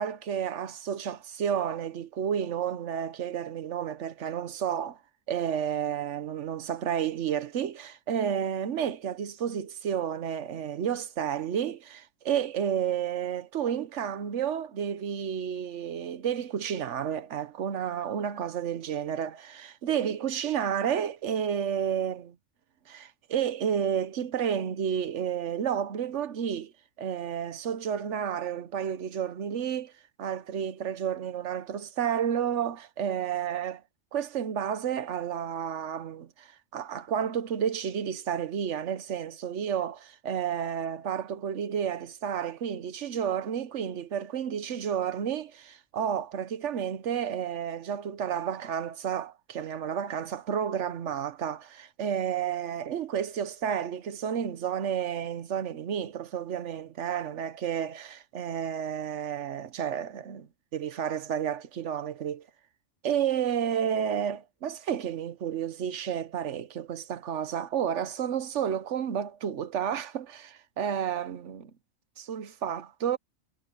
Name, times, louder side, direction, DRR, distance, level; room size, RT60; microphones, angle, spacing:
voice 1, 0.0-5.0 5.3-22.3 22.9-26.7 27.0-29.9 30.2-33.8 34.1-40.0 40.2-62.4 63.0-71.7 72.2-73.2, right 8 dB, 65° right, 1.2 m, -31 dB
omnidirectional pair, 1.4 m